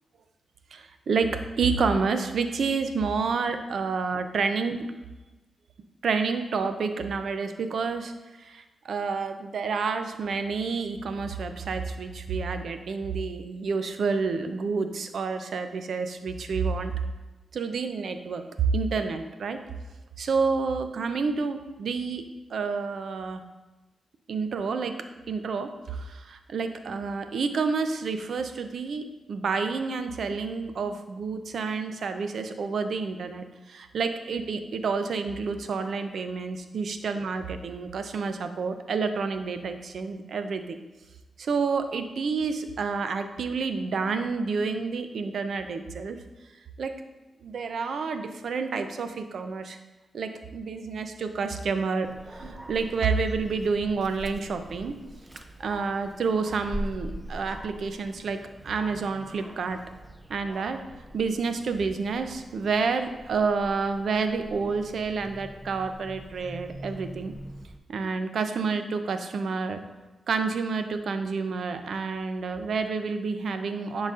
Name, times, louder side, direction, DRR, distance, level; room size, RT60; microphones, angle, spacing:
voice 1, 0.7-4.9 6.0-8.1 8.4-16.9 17.5-19.6 20.2-22.2 22.5-23.4 24.3-24.9 25.3-29.0 29.3-40.8 41.4-46.2 46.8-46.9 47.4-49.8 50.1-54.9 55.6-58.4 58.6-59.8 60.3-60.8 61.1-67.3 67.9-69.8 70.3-74.1, right 4 dB, 75° right, 8 dB, 0.5 m, -29 dB
Dog, 52.0-67.8, equal, 15° right, 0.5 m, -43 dB
10.5 x 4.0 x 2.5 m, 1.1 s
cardioid pair, 65°, 0 cm